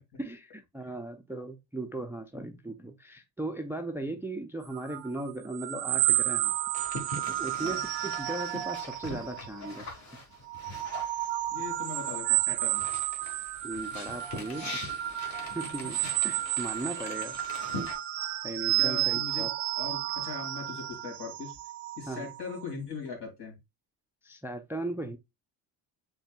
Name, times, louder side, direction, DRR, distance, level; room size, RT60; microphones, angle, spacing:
voice 1, 0.2-6.5 7.3-9.9 13.6-14.9 15.3-17.4 18.4-19.5 22.1-22.3 24.2-25.2, right 2 dB, 5° right, 0.4 m, -37 dB
sound 1, 4.7-9.9 10.3-22.7, right 15 dB, 80° right, 0.6 m, -32 dB
sound 2, 6.7-12.2 12.5-17.9, left 2 dB, 40° left, 1.6 m, -42 dB
voice 2, 11.5-12.8 15.6-15.7 18.8-21.5 22.0-23.5, left 5 dB, 70° left, 2.5 m, -40 dB
7.0 x 3.4 x 2.3 m
cardioid pair, 105°, 42 cm